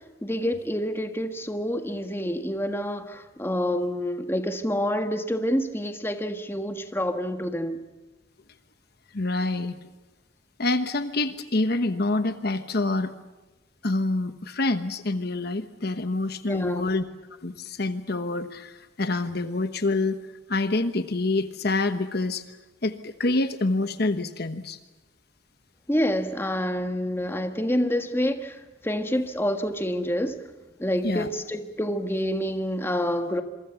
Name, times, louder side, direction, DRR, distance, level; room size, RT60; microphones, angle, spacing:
voice 1, 0.2-7.8 16.4-16.9 25.9-30.3 30.8-33.4, equal, 10° left, 6 dB, 1.5 m, -27 dB
voice 2, 9.1-9.8 10.6-13.1 13.8-17.0 17.4-20.2 20.5-22.4 22.8-24.8 31.0-31.3, left 2 dB, 55° left, 10 dB, 1.1 m, -26 dB
26.5 x 23.5 x 7.1 m, 1.1 s
head